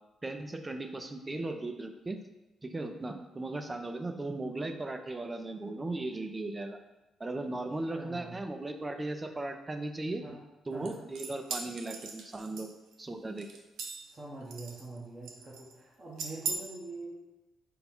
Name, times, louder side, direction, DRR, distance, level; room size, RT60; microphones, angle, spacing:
voice 1, 0.2-2.2 2.6-6.8 7.2-10.2 10.7-12.7 13.0-13.5, right 2 dB, 20° right, 7 dB, 0.4 m, -37 dB
voice 2, 8.0-8.4 10.2-10.4 10.7-11.0 14.0-17.1, right 2 dB, 35° right, -5 dB, 1.0 m, -44 dB
sound 1, 10.9-12.9 13.4-14.1 14.5-15.0 15.3-15.7 16.2-16.6, right 5 dB, 85° right, 0.5 m, -39 dB
5.5 x 2.3 x 4.2 m, 1.1 s
cardioid pair, 90°, 0 cm